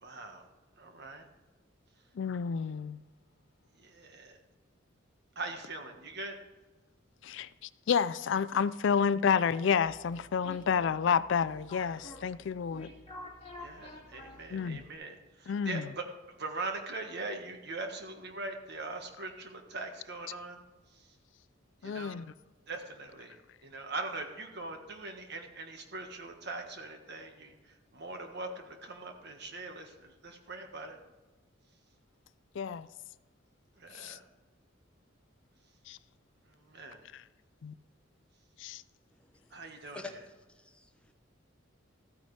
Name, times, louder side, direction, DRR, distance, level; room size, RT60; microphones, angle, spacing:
voice 1, 0.0-0.5 0.8-1.3 3.8-4.4 5.3-6.4 13.6-20.6 20.9-21.1 21.8-22.2 22.7-31.0 33.8-34.2 36.5-37.0 39.5-40.2, right 3 dB, 55° right, 1.5 m, -42 dB
voice 2, 2.2-3.0 7.2-7.5 7.9-12.9 14.5-14.8 15.5-15.8 21.8-22.2 32.6-32.9 33.9-34.2 35.9-36.0 37.1-37.2 37.6-37.7 38.6-38.8, left 6 dB, 65° left, 0.4 m, -30 dB
sound 1, 9.8-14.9, left 1 dB, 30° left, 2.1 m, -49 dB
voice 3, 39.2-39.6 39.9-40.2 40.5-41.1, left 3 dB, 5° left, 0.8 m, -47 dB
14.0 x 9.3 x 3.3 m
head